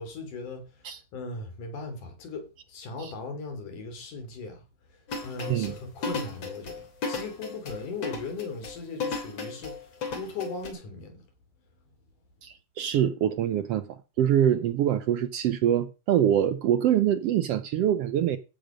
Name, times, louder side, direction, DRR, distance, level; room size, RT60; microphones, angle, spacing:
voice 1, 0.0-4.6 4.9-11.3, left 3 dB, 85° left, 4.8 m, -38 dB
sound 1, 5.1-10.7, left 4 dB, 55° left, 4.0 m, -34 dB
voice 2, 12.4-13.8 14.2-18.4, right 10 dB, 70° right, 1.6 m, -24 dB
15.5 x 7.8 x 5.2 m
omnidirectional pair, 3.5 m